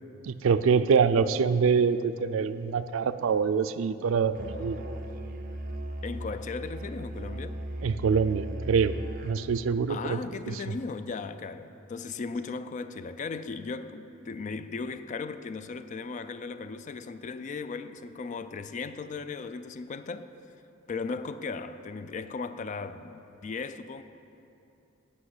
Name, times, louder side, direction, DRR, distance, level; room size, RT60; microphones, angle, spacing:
voice 1, 0.2-4.8 7.8-8.9 9.2-10.2 10.5-10.6, right 6 dB, 85° right, 13 dB, 0.4 m, -25 dB
Musical instrument, 4.3-9.5, right 1 dB, 45° right, 0.6 m, -37 dB
voice 2, 6.0-7.6 9.9-20.3 20.9-24.0, left 4 dB, 40° left, 12 dB, 0.3 m, -37 dB
8.4 x 6.0 x 7.8 m, 2.9 s
head